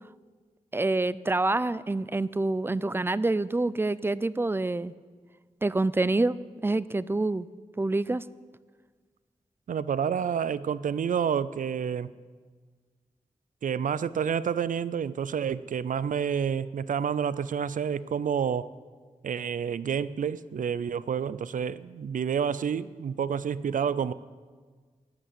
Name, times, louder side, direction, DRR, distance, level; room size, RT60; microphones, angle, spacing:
voice 1, 0.7-4.9 5.6-6.4 6.6-7.5 7.8-8.2, right 2 dB, 15° right, 18 dB, 0.4 m, -26 dB
voice 2, 9.7-12.1 13.6-18.7 19.2-24.1, right 7 dB, 75° right, 17 dB, 0.4 m, -29 dB
12.0 x 11.0 x 8.2 m, 1.5 s
wide cardioid pair, 105°, 14 cm